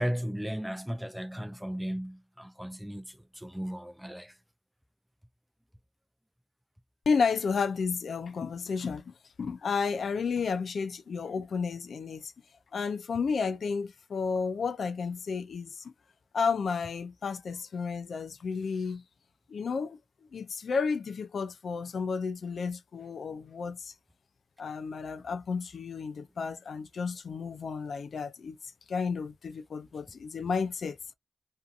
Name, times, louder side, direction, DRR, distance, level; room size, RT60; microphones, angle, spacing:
voice 1, 0.0-4.3, equal, 5° right, 0.3 m, -35 dB
voice 2, 7.1-12.3 12.7-15.9 16.3-19.0 19.5-20.0 20.3-23.9 24.6-28.6 28.9-31.0, left 5 dB, 80° left, 0.4 m, -32 dB
2.6 x 2.6 x 2.4 m
wide cardioid pair, 95°, 0 cm